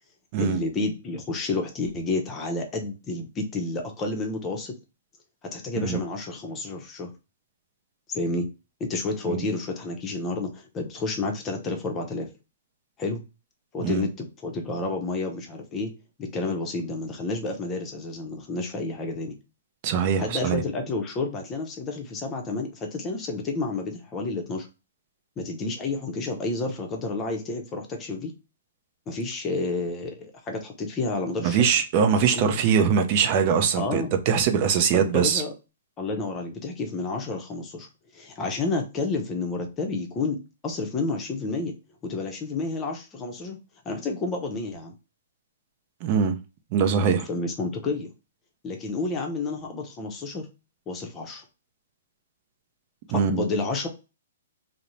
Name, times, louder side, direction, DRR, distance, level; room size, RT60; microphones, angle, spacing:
voice 1, 0.4-4.7 5.5-7.1 8.1-8.5 8.8-12.3 13.0-13.2 13.7-15.9 16.2-19.4 20.2-24.7 25.4-28.3 29.1-31.7 32.2-32.4 33.8-34.1 34.9-35.5 36.0-37.9 38.1-40.4 40.6-41.7 42.0-43.6 43.8-44.9 47.3-48.1 48.6-50.5 50.9-51.4 53.3-53.9, left 3 dB, 20° left, 0.6 m, -30 dB
voice 2, 19.8-20.6 31.4-35.4 46.0-46.4 46.7-47.3 53.1-53.4, right 7 dB, 40° right, 0.5 m, -22 dB
2.5 x 2.0 x 3.0 m
hypercardioid pair, 135°, 0 cm